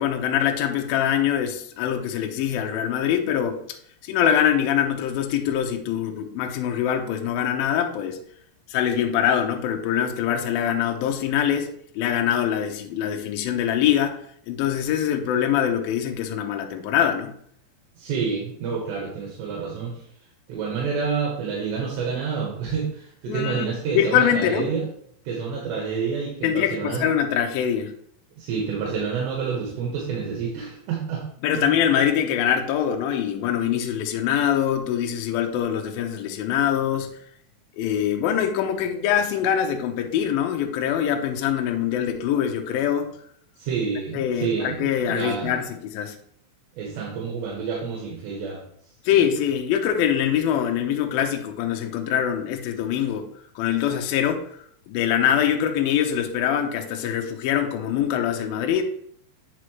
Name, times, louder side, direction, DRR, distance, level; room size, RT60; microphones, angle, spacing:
voice 1, 0.0-3.6 4.0-8.2 8.7-17.4 23.3-23.7 23.9-24.7 26.4-27.9 31.4-37.1 37.8-43.1 44.1-46.2 49.1-53.3 53.6-58.8, left 9 dB, 80° left, 4 dB, 2.2 m, -23 dB
voice 2, 18.0-19.9 20.5-24.8 25.2-27.1 28.4-31.2 31.5-31.6 43.6-45.6 46.8-48.6 49.1-49.2, right 5 dB, 80° right, -2 dB, 3.3 m, -28 dB
8.4 x 6.3 x 3.1 m, 0.66 s
omnidirectional pair, 5.0 m